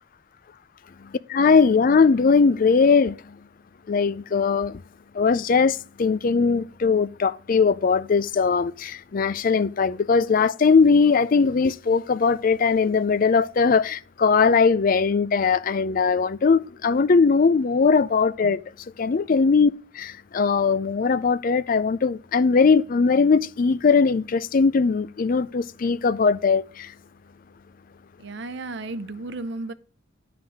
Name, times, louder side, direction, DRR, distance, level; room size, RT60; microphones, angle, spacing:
voice 1, 1.0-3.4 3.9-4.8 5.1-18.6 19.0-26.9, left 5 dB, 45° left, 0.4 m, -20 dB
voice 2, 28.2-29.7, right 2 dB, 60° right, 0.7 m, -33 dB
9.6 x 4.0 x 6.2 m
head